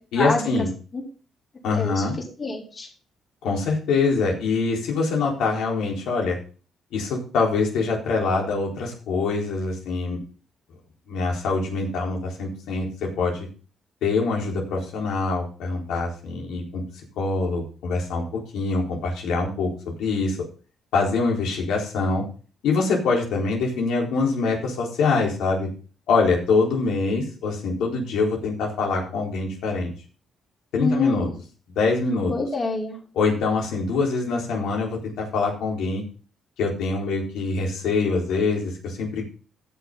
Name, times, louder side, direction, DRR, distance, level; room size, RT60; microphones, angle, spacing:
voice 1, 0.1-0.7 1.6-2.1 3.4-6.4 6.9-10.2 11.1-13.5 14.0-16.8 17.2-20.4 20.9-22.2 22.6-25.7 26.1-29.9 30.7-31.3 31.7-32.3 33.1-36.0 36.6-39.3, left 4 dB, 85° left, -1 dB, 4.2 m, -24 dB
voice 2, 2.4-2.9 30.8-31.2 32.3-33.0, left 3 dB, 40° left, -3 dB, 4.0 m, -26 dB
15.0 x 6.3 x 3.9 m, 0.37 s
cardioid pair, 90°, 0 cm